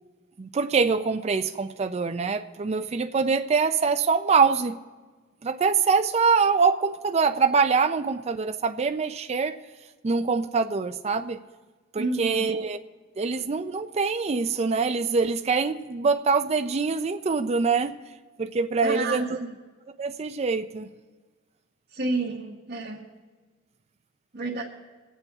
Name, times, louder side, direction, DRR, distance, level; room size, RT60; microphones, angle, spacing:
voice 1, 0.4-4.8 5.4-9.6 10.0-11.4 11.9-12.8 13.2-18.0 18.4-19.4 20.0-20.9, right 5 dB, 35° right, 7 dB, 0.4 m, -24 dB
voice 2, 12.0-12.5 18.8-19.3 21.9-23.1 24.3-24.6, right 2 dB, 50° right, -2 dB, 1.1 m, -29 dB
22.5 x 8.3 x 3.6 m, 1.3 s
head